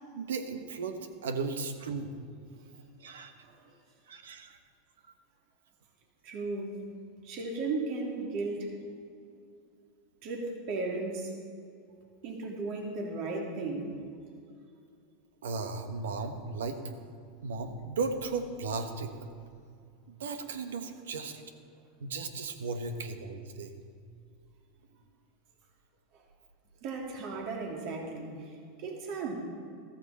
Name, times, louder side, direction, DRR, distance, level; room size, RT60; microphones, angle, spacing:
voice 1, 0.1-2.2 3.0-3.3 4.1-4.6 15.4-16.9 17.4-19.1 20.2-21.4 22.0-23.7, right 4 dB, 85° right, 8 dB, 1.2 m, -35 dB
voice 2, 6.2-6.8 7.2-8.8 10.2-11.3 12.2-14.0 26.8-29.3, right 3 dB, 55° right, 0 dB, 2.8 m, -35 dB
14.0 x 14.0 x 4.2 m, 2.4 s
hypercardioid pair, 110°, 0 cm